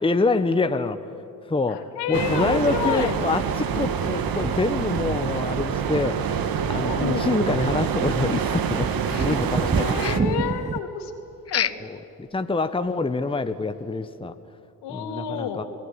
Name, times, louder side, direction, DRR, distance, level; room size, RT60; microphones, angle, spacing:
voice 1, 0.0-1.0 1.4-10.0 11.8-14.4 14.9-15.6, left 3 dB, 10° left, 9 dB, 1.2 m, -26 dB
voice 2, 1.7-3.1 6.9-7.3 9.7-11.1 11.5-11.7 14.8-15.6, left 8 dB, 65° left, 5 dB, 3.3 m, -29 dB
sound 1, 2.1-10.2, right 7 dB, 50° right, 2.1 m, -26 dB
sound 2, 8.8-10.8, right 5 dB, 15° right, 0.7 m, -27 dB
sound 3, 9.1-9.7 10.0-10.4 11.5-12.0 12.3-12.4 12.9-13.0 13.5-13.6, left 8 dB, 35° left, 1.1 m, -29 dB
29.5 x 20.0 x 9.9 m, 2.5 s
hypercardioid pair, 55°, 44 cm